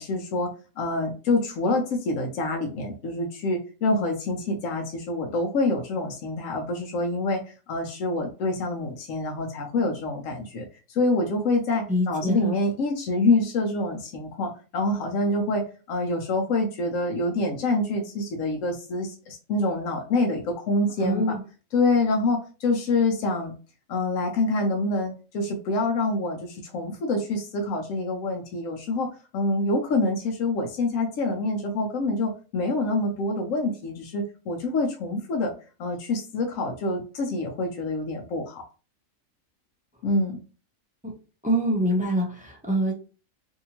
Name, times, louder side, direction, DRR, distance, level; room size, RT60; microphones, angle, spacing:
voice 1, 0.0-21.4 21.7-23.5 23.9-29.1 29.3-35.5 35.8-38.6 40.0-40.4, left 2 dB, 75° left, 1 dB, 1.0 m, -26 dB
voice 2, 11.9-12.5 21.0-21.4 41.4-42.9, equal, 10° right, 0 dB, 0.4 m, -25 dB
2.7 x 2.6 x 2.8 m, 0.35 s
omnidirectional pair, 1.4 m